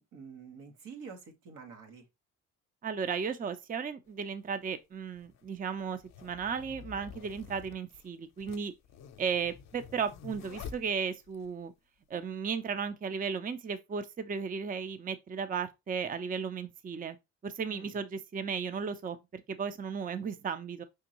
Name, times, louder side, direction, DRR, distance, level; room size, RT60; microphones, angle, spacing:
voice 1, 0.0-2.0 17.7-18.0, right 5 dB, 85° right, 1.4 m, -48 dB
voice 2, 2.8-8.7 9.2-11.7 12.1-17.2 17.4-20.8, right 6 dB, 30° right, 0.5 m, -35 dB
sound 1, 4.1-4.2 5.1-11.5, left 7 dB, 65° left, 0.6 m, -49 dB
5.1 x 3.6 x 2.9 m
cardioid pair, 90°, 30 cm